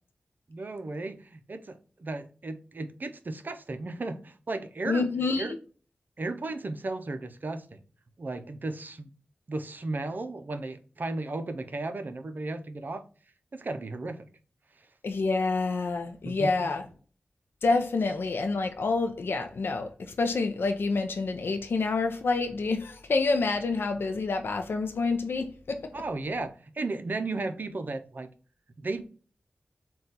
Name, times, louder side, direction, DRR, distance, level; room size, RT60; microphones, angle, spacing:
voice 1, 0.5-5.1 5.4-5.5 6.2-7.8 8.2-9.1 9.5-13.0 13.5-14.3 16.2-16.7 25.9-28.3 28.8-29.0, right 2 dB, 55° right, 0.5 m, -35 dB
voice 2, 4.9-5.5 15.0-16.8 17.6-25.9, left 3 dB, 75° left, 0.4 m, -28 dB
3.9 x 2.3 x 3.9 m
cardioid pair, 45°, 4 cm